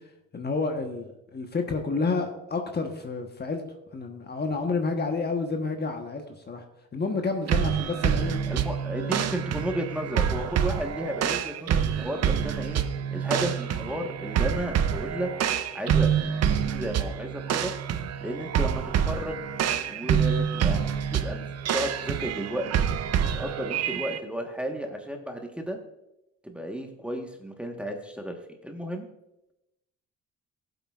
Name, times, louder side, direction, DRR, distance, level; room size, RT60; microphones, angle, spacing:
voice 1, 0.3-3.6 3.9-6.6 6.9-8.4 8.9-9.2, left 4 dB, 35° left, 4 dB, 1.2 m, -30 dB
sound 1, 7.5-24.2, right 8 dB, 55° right, 0.7 m, -27 dB
voice 2, 8.5-12.8 13.1-15.3 15.7-16.1 16.5-17.7 18.2-19.4 19.9-22.8 23.3-25.8 26.4-28.4 28.6-29.1, equal, 5° right, 3 dB, 1.3 m, -33 dB
15.0 x 8.0 x 2.5 m, 0.88 s
cardioid pair, 90°, 30 cm